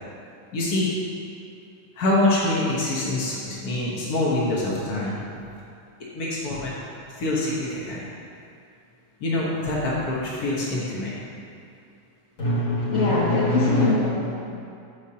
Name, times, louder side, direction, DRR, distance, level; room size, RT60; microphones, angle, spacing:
voice 1, 0.5-0.9 2.0-5.2 6.1-6.7 7.2-8.0 9.2-11.1, left 2 dB, 85° left, -5 dB, 0.8 m, -25 dB
voice 2, 12.4-14.3, left 2 dB, 30° left, -9 dB, 2.2 m, -21 dB
14.5 x 5.0 x 2.9 m, 2.5 s
omnidirectional pair, 3.5 m